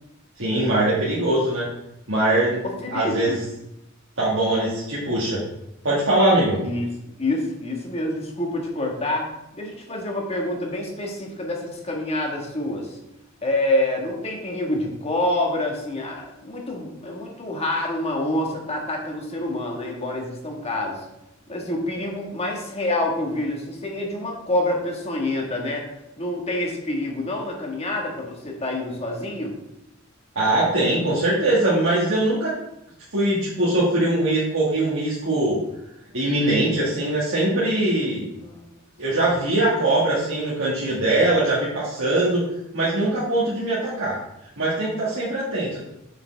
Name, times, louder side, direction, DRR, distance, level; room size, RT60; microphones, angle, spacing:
voice 1, 0.4-1.7 2.1-2.6 2.9-3.4 4.2-5.4 5.8-6.6 30.4-32.5 33.1-35.6 36.1-38.3 39.0-42.5 42.7-44.2 44.6-45.8, right 1 dB, 65° right, -8 dB, 2.0 m, -21 dB
voice 2, 2.6-3.4 6.6-6.9 7.2-13.0 13.4-21.0 21.5-25.8 26.2-29.5 38.4-38.7 39.1-39.2, left 1 dB, 30° left, 0 dB, 1.7 m, -27 dB
7.0 x 6.9 x 3.5 m, 0.85 s
head